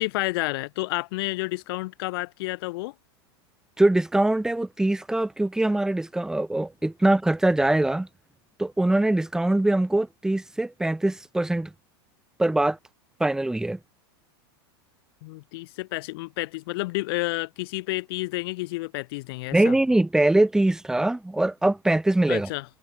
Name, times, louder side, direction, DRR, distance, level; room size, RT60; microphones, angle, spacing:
voice 1, 0.0-2.9 15.2-19.8 22.3-22.7, left 22 dB, 65° left, 2.6 m, -30 dB
voice 2, 3.8-8.1 8.6-11.7 12.4-12.8 13.2-13.8 19.5-22.5, right 1 dB, 5° right, 0.9 m, -22 dB
supercardioid pair, 125°, 13 cm